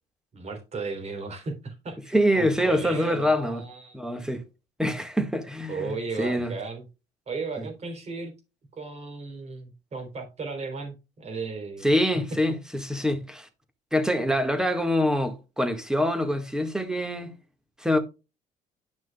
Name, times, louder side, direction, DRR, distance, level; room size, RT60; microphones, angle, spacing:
voice 1, 0.3-4.0 5.7-6.8 7.3-8.3 8.7-11.9 12.3-12.6, right 4 dB, 40° right, 3.5 m, -35 dB
voice 2, 2.1-3.6 3.9-4.4 4.8-6.5 7.6-7.7 11.8-13.5 13.9-17.3 17.8-18.0, equal, 5° right, 1.6 m, -25 dB
11.5 x 6.0 x 2.3 m
cardioid pair, 110°, 17 cm